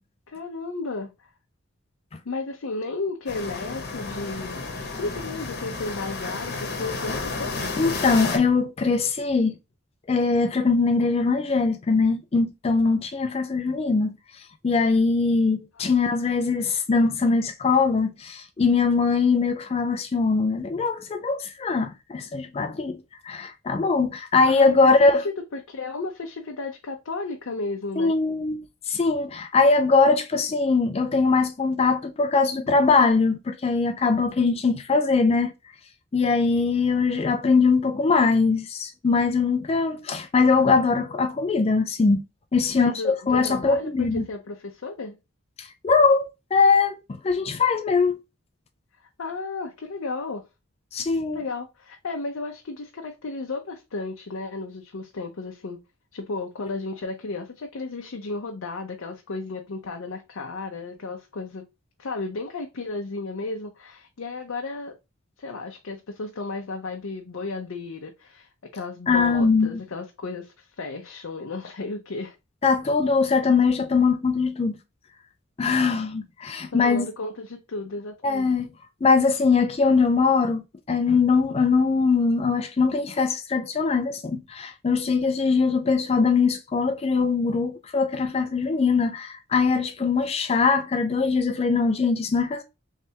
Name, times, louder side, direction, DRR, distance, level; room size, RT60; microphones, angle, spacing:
voice 1, 0.3-1.3 2.2-4.7 4.9-7.6 15.8-16.3 24.5-28.2 42.8-45.2 49.2-50.4 51.3-55.8 56.1-61.7 62.0-65.0 65.4-72.3 76.7-78.5, left 3 dB, 70° left, 0.6 m, -34 dB
sound 1, 3.3-8.4, left 3 dB, 50° left, 1.0 m, -32 dB
voice 2, 7.8-9.6 10.1-14.2 14.6-25.2 28.0-28.6 28.9-35.5 36.1-42.2 42.5-44.2 45.6-48.2 50.9-51.4 69.1-69.8 72.6-74.8 75.6-77.1 78.2-78.7 79.0-80.6 80.9-92.6, left 4 dB, 30° left, 0.3 m, -21 dB
3.3 x 3.2 x 2.8 m
head